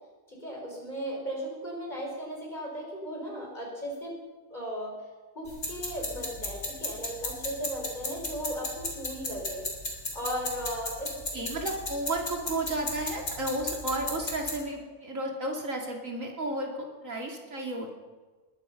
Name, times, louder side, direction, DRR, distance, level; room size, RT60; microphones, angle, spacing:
voice 1, 0.3-4.2 4.5-5.0 5.4-9.7 10.1-11.4, equal, 30° left, -2 dB, 5.4 m, -36 dB
sound 1, 5.5-14.5, left 2 dB, 85° left, 4.0 m, -35 dB
voice 2, 11.3-17.9, right 1 dB, 70° right, 1 dB, 2.9 m, -33 dB
21.0 x 12.0 x 5.6 m, 1.3 s
omnidirectional pair, 1.4 m